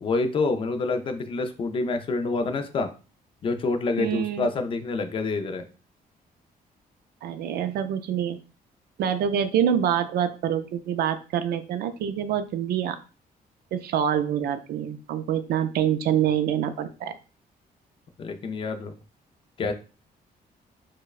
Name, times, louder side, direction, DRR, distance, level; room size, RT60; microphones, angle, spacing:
voice 1, 0.0-2.9 3.4-5.6 18.2-18.9 19.6-19.7, left 3 dB, 35° left, 7 dB, 0.4 m, -27 dB
voice 2, 4.0-4.5 7.2-8.4 9.0-13.0 13.7-17.2, right 9 dB, 85° right, 10 dB, 0.4 m, -26 dB
4.6 x 2.1 x 2.3 m, 0.34 s
cardioid pair, 165°, 16 cm